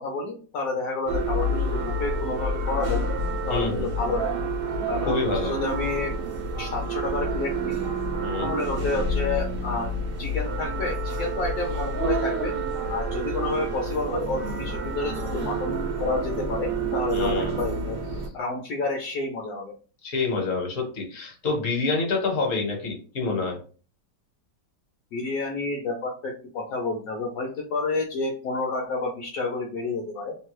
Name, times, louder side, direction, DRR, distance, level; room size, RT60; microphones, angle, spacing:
voice 1, 0.0-3.0 3.5-4.3 4.9-6.1 6.6-7.8 8.4-9.9 10.2-12.5 12.9-18.0 18.3-19.7 25.1-30.4, left 3 dB, 70° left, 0 dB, 1.0 m, -29 dB
sound 1, 1.1-18.3, right 2 dB, 80° right, 0.5 m, -28 dB
voice 2, 3.5-3.9 5.1-5.6 8.2-8.6 17.1-17.6 20.0-23.6, left 3 dB, 50° left, 1 dB, 1.2 m, -27 dB
3.0 x 2.2 x 3.1 m, 0.39 s
omnidirectional pair, 2.0 m